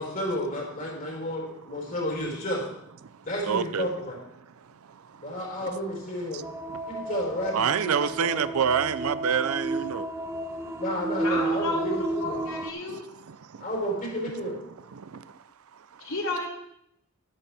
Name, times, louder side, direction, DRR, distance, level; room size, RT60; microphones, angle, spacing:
voice 1, 0.0-2.6 3.2-4.2 5.2-6.5 6.9-8.4 10.6-12.4 13.6-14.6, equal, 40° left, 3.9 m, -32 dB
voice 2, 3.0-3.9 4.4-5.7 6.3-7.1 7.5-10.8 12.8-13.7 14.7-15.4 15.7-16.1, right 7 dB, 75° right, 0.5 m, -30 dB
sound 1, 6.4-12.7, right 2 dB, 10° right, 0.6 m, -32 dB
voice 3, 11.2-13.0 16.0-16.5, left 2 dB, 70° left, 2.9 m, -32 dB
13.5 x 11.5 x 3.5 m
head